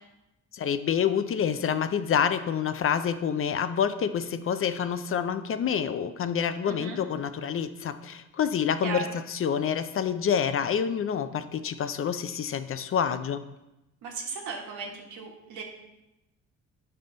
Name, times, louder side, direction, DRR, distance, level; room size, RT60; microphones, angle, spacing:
voice 1, 0.5-13.4, left 8 dB, 45° left, 11 dB, 0.5 m, -27 dB
voice 2, 6.6-7.0 8.8-9.1 14.0-15.6, right 5 dB, 85° right, 0 dB, 1.5 m, -36 dB
8.3 x 5.5 x 3.9 m, 0.95 s
cardioid pair, 90°, 30 cm